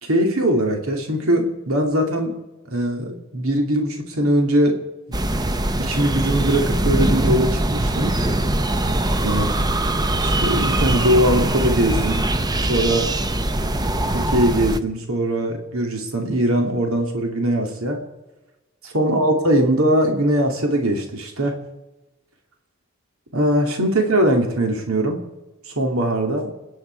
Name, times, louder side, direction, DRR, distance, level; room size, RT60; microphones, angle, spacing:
voice 1, 0.0-2.3 2.7-4.8 5.8-8.1 9.2-9.4 10.2-12.3 12.7-13.1 14.1-18.0 18.8-21.6 23.3-25.2 25.6-26.5, right 1 dB, 75° right, 3 dB, 2.8 m, -21 dB
sound 1, 5.1-14.8, right 1 dB, 20° right, 0.7 m, -22 dB
29.5 x 10.0 x 4.7 m, 1.0 s
head